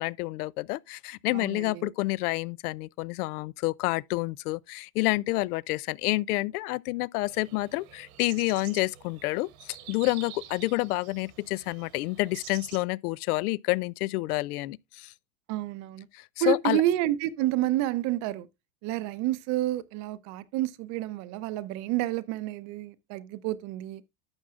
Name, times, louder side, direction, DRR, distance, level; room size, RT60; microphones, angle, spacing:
voice 1, 0.0-15.1 16.1-16.8, left 20 dB, 90° left, 0.5 m, -29 dB
voice 2, 1.3-1.9 15.5-16.1 16.4-18.5 18.8-24.0, right 14 dB, 40° right, 0.6 m, -29 dB
sound 1, 7.2-12.8, right 12 dB, 70° right, 1.7 m, -48 dB
11.5 x 7.5 x 2.4 m
supercardioid pair, 150°, 43 cm